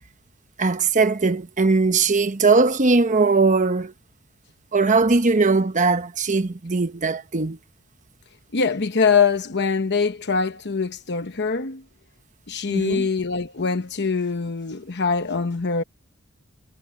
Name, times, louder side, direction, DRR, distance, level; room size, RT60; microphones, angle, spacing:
voice 1, 0.6-3.9 4.7-7.6 12.7-13.1, right 3 dB, 35° right, 1.0 m, -20 dB
voice 2, 8.5-11.8 12.5-15.8, left 5 dB, 55° left, 1.0 m, -23 dB
head